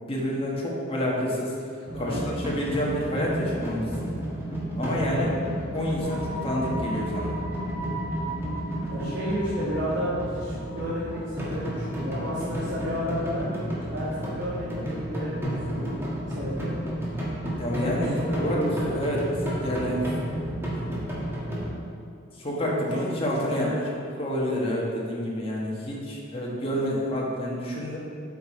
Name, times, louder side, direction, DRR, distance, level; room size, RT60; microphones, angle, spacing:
voice 1, 0.1-1.6 2.0-4.2 4.8-5.4 5.7-7.3 17.6-19.2 19.6-20.1 20.6-20.9 22.4-28.0, equal, 30° left, -4 dB, 1.5 m, -28 dB
sound 1, 1.9-21.7, right 1 dB, 15° right, 1.5 m, -32 dB
voice 2, 1.9-2.3 8.9-13.5 13.9-16.0 16.3-16.7 17.8-19.1 22.9-23.0 23.5-23.8, equal, 65° right, -9 dB, 1.6 m, -32 dB
8.1 x 5.5 x 4.2 m, 2.5 s
head